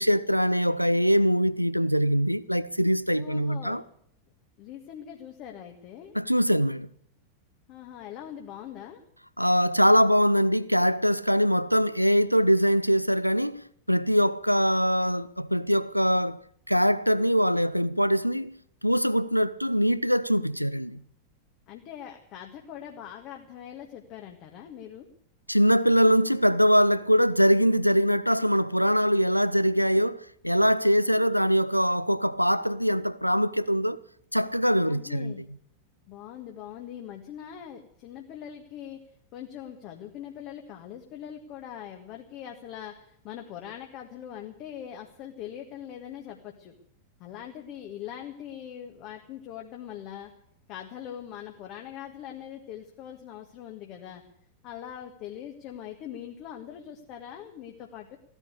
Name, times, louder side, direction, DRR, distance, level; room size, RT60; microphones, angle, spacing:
voice 1, 0.0-3.8 6.1-6.9 9.4-16.4 16.7-18.6 18.8-21.0 25.5-34.0 34.3-35.4, equal, 90° right, 0.5 m, -23 dB
voice 2, 3.2-3.8 4.6-6.2 7.7-9.0 21.7-25.1 34.9-35.4 36.1-39.0 39.3-46.7 47.2-50.3 50.7-54.2 54.6-58.2, left 10 dB, 40° left, 1.7 m, -42 dB
16.0 x 10.5 x 8.2 m
figure-of-eight pair, 90°, 0 cm